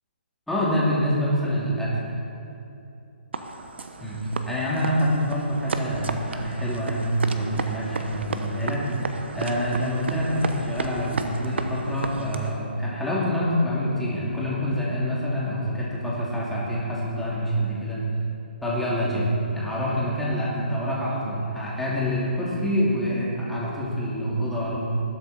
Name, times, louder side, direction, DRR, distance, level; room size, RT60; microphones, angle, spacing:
voice 1, 0.5-1.9 4.0-4.2 4.4-18.0 18.6-24.8, equal, 5° left, -7 dB, 2.6 m, -26 dB
sound 1, 3.3-12.6, right 3 dB, 75° right, 1.0 m, -33 dB
19.5 x 8.3 x 4.2 m, 2.8 s
hypercardioid pair, 150°, 6 cm